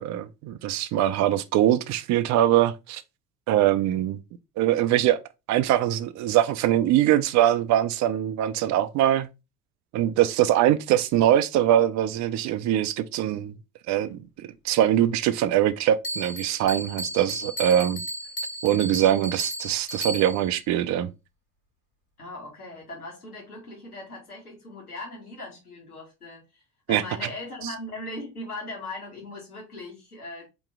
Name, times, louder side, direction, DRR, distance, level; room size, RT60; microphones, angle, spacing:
voice 1, 0.0-3.0 3.5-4.2 4.6-5.2 5.5-9.3 9.9-13.5 13.9-18.0 18.6-21.1 26.9-27.0, right 12 dB, 40° right, 0.6 m, -22 dB
Bell, 16.0-20.6, right 1 dB, 30° left, 1.8 m, -34 dB
voice 2, 22.2-26.6 26.9-30.5, left 2 dB, 90° left, 1.7 m, -39 dB
4.5 x 3.0 x 3.6 m
figure-of-eight pair, 60°, 43 cm